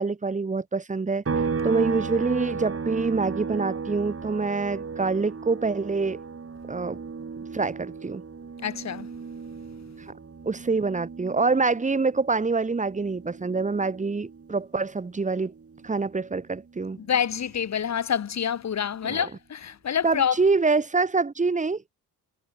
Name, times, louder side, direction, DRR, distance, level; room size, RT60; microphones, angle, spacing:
voice 1, 0.0-6.2 6.7-7.0 7.5-8.2 10.4-15.5 15.8-17.0 19.0-19.3 20.0-21.9, right 4 dB, 20° right, 1.3 m, -26 dB
sound 1, 1.3-14.8 15.1-17.3, right 5 dB, 35° right, 7.4 m, -35 dB
voice 2, 8.6-9.1 17.0-20.4, left 8 dB, 40° left, 1.5 m, -27 dB
cardioid pair, 95°, 40 cm